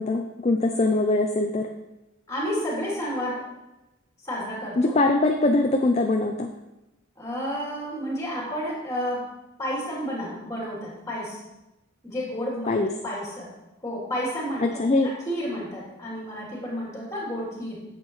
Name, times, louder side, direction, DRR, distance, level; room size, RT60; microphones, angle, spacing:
voice 1, 0.0-1.7 4.8-6.5 12.7-12.9 14.6-15.1, left 2 dB, 30° left, 4 dB, 0.4 m, -22 dB
voice 2, 2.3-3.5 4.2-4.9 7.2-9.3 9.6-11.4 12.0-12.8 13.0-13.5 13.8-14.6 15.3-17.8, equal, 15° left, -5 dB, 2.9 m, -31 dB
10.5 x 7.5 x 3.2 m, 0.98 s
head